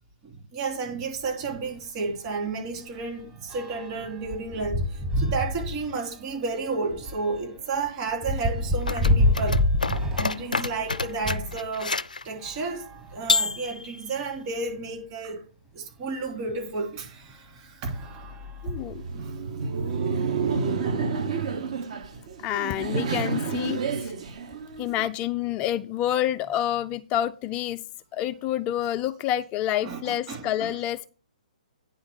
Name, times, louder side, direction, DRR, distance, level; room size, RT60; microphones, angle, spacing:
voice 1, 0.2-9.6 10.1-12.0 12.2-15.4 15.7-18.1 18.6-18.7 19.1-19.4 20.3-20.4 22.1-22.2 29.8-30.8, right 4 dB, 35° right, 3.3 m, -32 dB
sound 1, 1.1-1.3 1.7-1.9 2.1-11.6 12.3-13.7 14.4-14.5 14.7-14.8 16.5-16.6 17.2-17.5 17.9-19.2, left 1 dB, 15° right, 1.1 m, -29 dB
sound 2, 8.8-12.2 13.3-14.1, left 3 dB, 90° left, 0.5 m, -28 dB
voice 2, 18.6-19.0 22.4-24.1 24.8-27.8 28.1-31.1, left 12 dB, 25° left, 0.3 m, -28 dB
Laughter, 18.8-25.1, right 5 dB, 55° right, 1.2 m, -29 dB
9.6 x 3.8 x 7.2 m
figure-of-eight pair, 125°, 4 cm